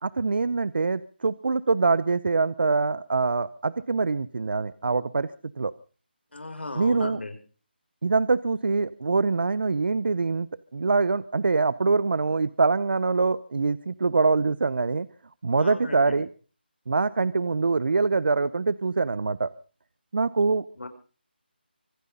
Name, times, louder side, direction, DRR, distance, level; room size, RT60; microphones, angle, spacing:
voice 1, 0.0-5.3 5.6-5.7 6.8-7.2 8.0-10.5 10.7-15.1 15.4-16.3 16.9-19.5 20.1-20.6, right 4 dB, 65° right, 18 dB, 0.7 m, -24 dB
voice 2, 6.3-7.4 15.6-16.2 20.8-20.9, left 2 dB, 90° left, 8 dB, 5.4 m, -36 dB
25.5 x 9.7 x 5.4 m, 0.39 s
figure-of-eight pair, 165°, 6 cm